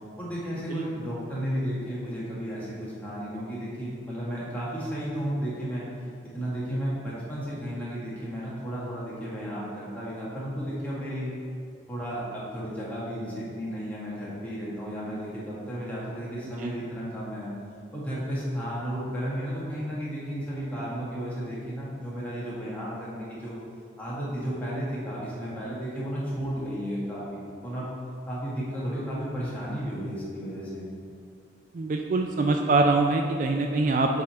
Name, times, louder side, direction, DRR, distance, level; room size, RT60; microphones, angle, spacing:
voice 1, 0.2-5.9 6.3-11.3 11.9-17.5 17.9-23.5 24.0-27.9 28.3-30.9, equal, 10° left, -8 dB, 1.5 m, -33 dB
voice 2, 31.7-34.2, right 3 dB, 45° right, 3 dB, 0.3 m, -24 dB
7.5 x 3.7 x 4.3 m, 2.3 s
head